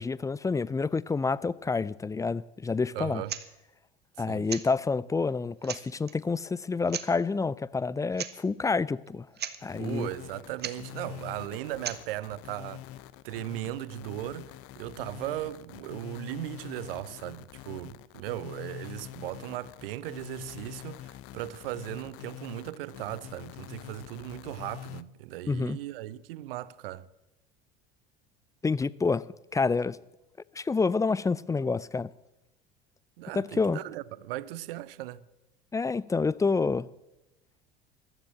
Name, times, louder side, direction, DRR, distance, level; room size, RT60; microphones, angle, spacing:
voice 1, 0.0-3.2 4.2-9.3 9.6-10.1 25.5-25.8 28.6-29.3 29.5-30.0 30.6-32.1 33.3-33.8 35.7-36.9, left 4 dB, 10° left, 0.4 m, -28 dB
voice 2, 2.9-3.4 4.2-4.5 9.8-12.8 13.2-27.1 33.2-35.2, right 15 dB, 70° right, 0.7 m, -37 dB
sound 1, 3.3-3.5 4.5-4.7 5.3-5.4 5.6-6.1 6.9-7.1 8.1-8.4 8.6-8.7 9.1-9.2 9.4-9.6 10.6-10.8 11.8-12.0, right 9 dB, 35° right, 1.3 m, -36 dB
sound 2, 9.6-25.0, left 14 dB, 50° left, 0.7 m, -45 dB
14.5 x 12.0 x 7.5 m
hypercardioid pair, 70°, 30 cm